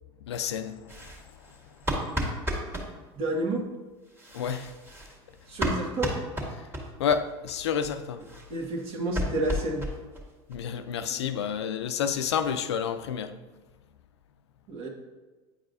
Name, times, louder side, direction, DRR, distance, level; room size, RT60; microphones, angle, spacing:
voice 1, 0.3-0.8 4.3-4.7 7.0-8.2 10.5-13.3, left 7 dB, 90° left, 0.4 m, -29 dB
sound 1, 0.9-2.9 4.1-7.2 7.5-7.6 7.8-7.9 8.2-10.3 10.5-10.6 10.9-11.0 11.4-11.5 11.7-12.5, equal, 15° right, 1.7 m, -33 dB
voice 2, 3.2-3.6 5.5-6.1 8.5-9.9 14.7-14.9, right 1 dB, 50° right, 1.5 m, -30 dB
8.9 x 4.8 x 2.6 m
hypercardioid pair, 90°, 14 cm